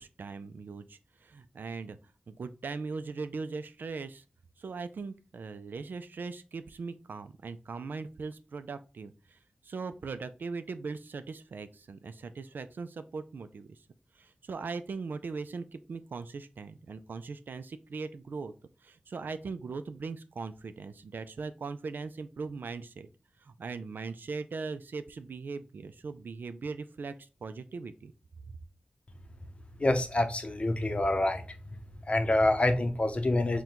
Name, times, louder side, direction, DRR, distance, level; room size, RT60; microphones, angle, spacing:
voice 1, 0.0-2.0 2.3-4.2 4.6-13.8 14.2-18.5 18.8-23.1 23.4-28.1 28.5-28.6, right 4 dB, 80° right, 0.3 m, -40 dB
voice 2, 29.8-31.4 31.7-33.6, left 2 dB, 35° left, 0.6 m, -27 dB
4.4 x 2.2 x 3.7 m
cardioid pair, 55°, 3 cm